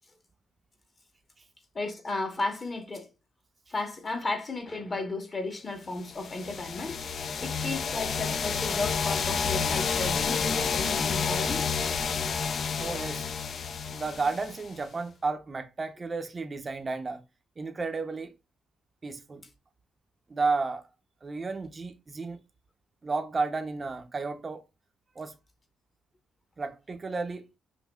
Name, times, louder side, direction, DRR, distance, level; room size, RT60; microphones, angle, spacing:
voice 1, 1.7-3.1 3.7-7.0 7.4-11.7, left 3 dB, 30° left, 1.0 m, -34 dB
sound 1, 6.1-14.8, left 6 dB, 50° left, 0.3 m, -30 dB
voice 2, 12.8-13.3 13.9-17.2 17.6-18.3 19.0-19.4 20.3-20.8 21.2-22.4 23.0-24.6 25.2-25.3 26.6-27.5, right 4 dB, 30° right, 0.5 m, -32 dB
5.5 x 2.6 x 2.2 m
cardioid pair, 90°, 0 cm